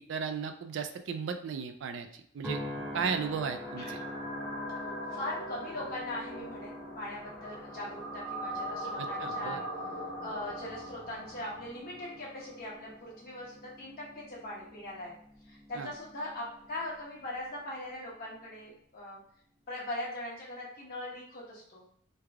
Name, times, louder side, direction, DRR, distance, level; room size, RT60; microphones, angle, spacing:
voice 1, 0.1-2.6 2.9-4.0 9.0-9.6 15.7-15.9, right 6 dB, 65° right, 7 dB, 0.4 m, -35 dB
sound 1, 2.4-16.9 17.4-17.9, left 1 dB, 5° right, 0.7 m, -46 dB
sound 2, 2.7-12.9, equal, 75° left, 1.2 m, -41 dB
voice 2, 5.1-9.6 10.2-15.1 15.5-19.2 19.7-21.8, left 1 dB, 45° left, -5 dB, 1.3 m, -40 dB
3.3 x 2.3 x 3.4 m, 0.64 s
head